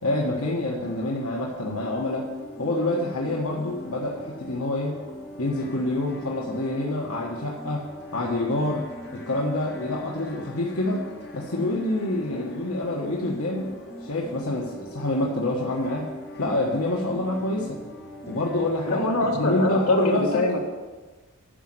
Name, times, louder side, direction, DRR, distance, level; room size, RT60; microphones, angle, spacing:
voice 1, 0.0-2.3 2.6-5.0 5.4-7.9 8.1-8.9 9.1-11.1 11.3-16.1 16.4-17.8 18.3-19.0 19.4-20.4, left 2 dB, 70° left, -2 dB, 1.3 m, -27 dB
sound 1, 0.8-18.9, left 1 dB, 50° left, 0.9 m, -45 dB
sound 2, 1.7-19.8, equal, ahead, 0.6 m, -43 dB
voice 2, 18.9-20.6, left 1 dB, 90° left, 0 dB, 2.0 m, -24 dB
10.0 x 6.5 x 7.7 m, 1.3 s
head